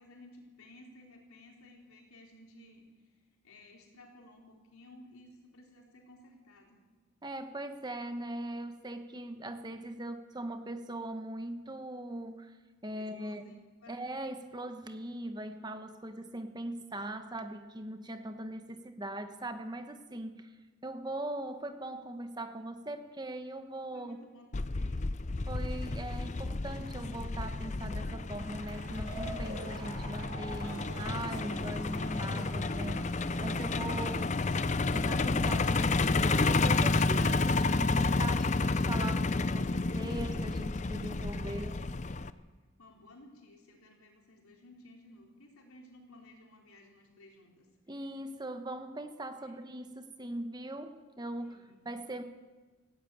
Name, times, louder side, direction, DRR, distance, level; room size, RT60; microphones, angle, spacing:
voice 1, 0.0-3.1 3.4-6.8 12.9-13.6 13.8-14.0 23.9-25.0 40.9-41.7 42.3-42.5 42.8-47.7 49.4-49.9 51.3-51.9, left 1 dB, 85° left, 1 dB, 4.3 m, -56 dB
voice 2, 7.2-12.6 12.8-13.4 13.9-20.5 20.8-24.2 25.4-34.3 34.9-41.8 47.9-52.2, right 1 dB, 20° right, 8 dB, 1.1 m, -40 dB
Truck, 24.5-42.3, left 3 dB, 35° left, 0.6 m, -31 dB
sound 1, 28.3-34.1, right 2 dB, 80° right, 5.4 m, -47 dB
sound 2, 32.4-38.8, equal, 35° right, 3.9 m, -53 dB
18.5 x 16.0 x 8.6 m, 1.3 s
head